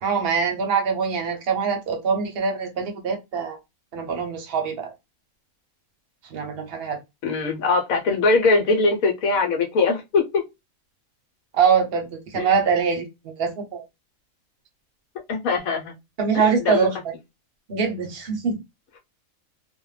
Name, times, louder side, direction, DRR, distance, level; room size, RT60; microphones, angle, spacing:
voice 1, 0.0-3.6 3.9-4.9 6.3-7.0 11.5-13.8 16.2-17.1 17.7-18.6, right 6 dB, 50° right, 0.8 m, -23 dB
voice 2, 7.2-10.4 12.4-12.5 15.3-15.9 16.3-16.9, left 3 dB, 75° left, 1.1 m, -21 dB
2.5 x 2.1 x 3.0 m
omnidirectional pair, 1.5 m